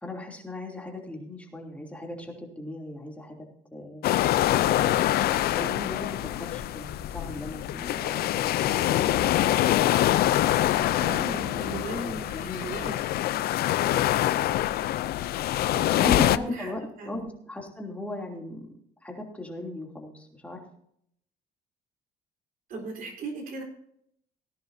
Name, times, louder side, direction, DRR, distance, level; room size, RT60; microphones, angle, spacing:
voice 1, 0.0-3.4 3.7-4.0 4.6-9.5 10.4-12.7 16.0-18.7 19.0-20.6, left 1 dB, 10° left, 0 dB, 3.1 m, -38 dB
sound 1, 4.0-16.4, left 13 dB, 65° left, 0.5 m, -25 dB
voice 2, 11.0-13.0 15.7-17.2 22.7-23.6, right 3 dB, 55° right, 3 dB, 3.9 m, -38 dB
18.0 x 10.5 x 2.8 m, 0.70 s
cardioid pair, 110°, 17 cm